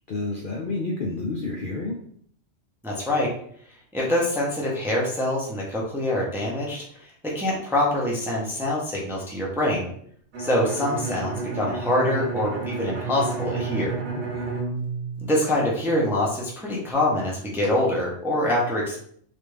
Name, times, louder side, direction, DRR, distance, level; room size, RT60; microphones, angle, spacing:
voice 1, 0.1-2.0 14.1-14.6, left 3 dB, 60° left, -1 dB, 0.5 m, -30 dB
voice 2, 2.8-3.3 3.9-9.9 10.4-13.9 15.2-19.0, left 1 dB, 5° right, -3 dB, 0.5 m, -25 dB
Bowed string instrument, 10.3-16.0, right 4 dB, 75° right, 1.1 m, -31 dB
3.4 x 2.5 x 3.2 m, 0.63 s
omnidirectional pair, 1.3 m